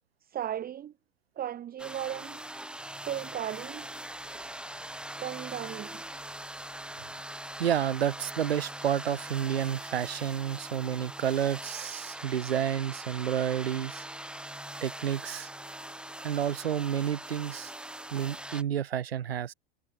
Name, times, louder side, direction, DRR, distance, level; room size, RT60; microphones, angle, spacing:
voice 1, 0.2-0.9 1.3-2.4 3.0-3.9 4.3-4.4 5.2-6.0, right 11 dB, 30° right, 1.4 m, -36 dB
sound 1, 1.8-18.6, right 1 dB, 5° right, 2.2 m, -42 dB
voice 2, 7.6-14.0 14.8-15.5 16.2-17.7 18.1-19.5, right 9 dB, 85° right, 1.4 m, -30 dB
hypercardioid pair, 95°, 29 cm